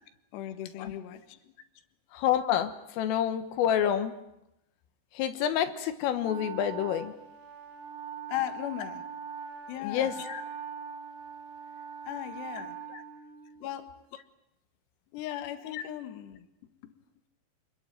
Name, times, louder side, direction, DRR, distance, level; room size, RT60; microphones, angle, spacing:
voice 1, 0.3-1.5 8.3-9.1 9.7-10.2 12.0-12.8 13.6-13.9 15.1-16.5 16.8-16.9, left 12 dB, 65° left, 7 dB, 3.5 m, -37 dB
voice 2, 2.1-4.1 5.2-7.1 9.8-10.4 12.6-12.7, left 10 dB, 85° left, 8 dB, 3.9 m, -28 dB
Wind instrument woodwind instrument, 6.2-13.8, right 7 dB, 65° right, 3.9 m, -42 dB
28.0 x 21.5 x 9.1 m, 0.87 s
omnidirectional pair, 5.8 m